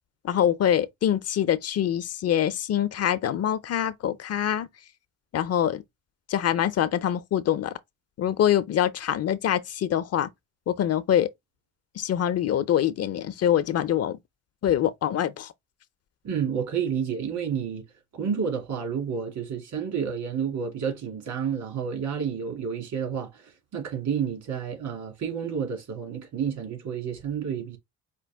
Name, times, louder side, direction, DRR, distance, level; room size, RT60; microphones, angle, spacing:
voice 1, 0.2-4.7 5.3-5.8 6.3-7.7 8.2-10.3 10.7-11.3 12.0-14.2 14.6-15.5, left 10 dB, 55° left, 0.6 m, -24 dB
voice 2, 16.2-17.8 18.1-23.4 23.7-27.8, right 7 dB, 75° right, 2.5 m, -30 dB
5.1 x 2.5 x 3.4 m
cardioid pair, 90°, 30 cm